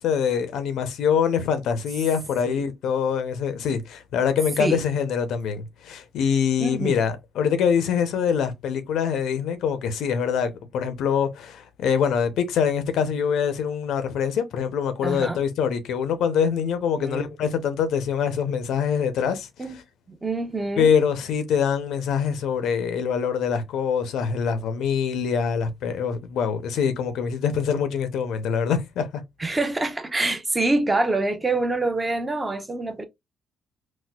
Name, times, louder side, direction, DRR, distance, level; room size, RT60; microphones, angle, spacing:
voice 1, 0.0-19.5 20.8-29.2, left 7 dB, 80° left, 0.6 m, -24 dB
voice 2, 6.6-7.0 15.0-15.4 17.0-17.3 19.6-19.8 20.1-20.9 29.4-33.0, right 2 dB, 20° right, 0.7 m, -26 dB
4.1 x 2.1 x 2.2 m
cardioid pair, 90°, 0 cm